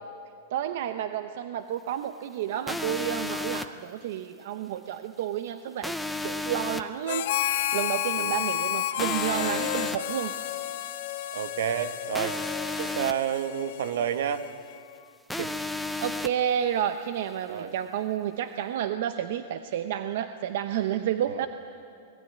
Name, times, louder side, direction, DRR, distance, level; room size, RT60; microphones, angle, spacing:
voice 1, 0.5-5.9 6.2-10.3 16.0-21.5, right 10 dB, 50° right, 9 dB, 0.8 m, -30 dB
sound 1, 2.7-3.7 5.8-6.8 9.0-10.0 12.1-13.1 15.3-16.3, left 2 dB, ahead, 0.6 m, -32 dB
Harmonica, 7.1-14.8, left 12 dB, 50° left, 1.4 m, -31 dB
voice 2, 11.3-12.4 12.8-14.5 15.4-15.5 17.5-17.7 21.3-21.5, right 9 dB, 65° right, 10 dB, 1.3 m, -30 dB
25.5 x 20.0 x 9.4 m, 2.4 s
supercardioid pair, 180°, 0 cm